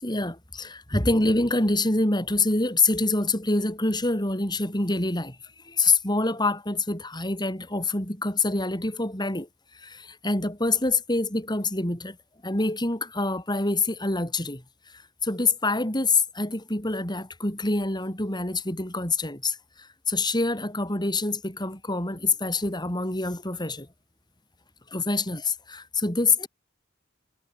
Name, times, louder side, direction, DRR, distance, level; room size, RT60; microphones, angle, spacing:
voice 1, 0.0-5.4 5.6-9.5 9.7-12.2 12.4-14.6 15.2-23.9 24.9-26.5, left 3 dB, 20° left, 6.3 m, -26 dB
head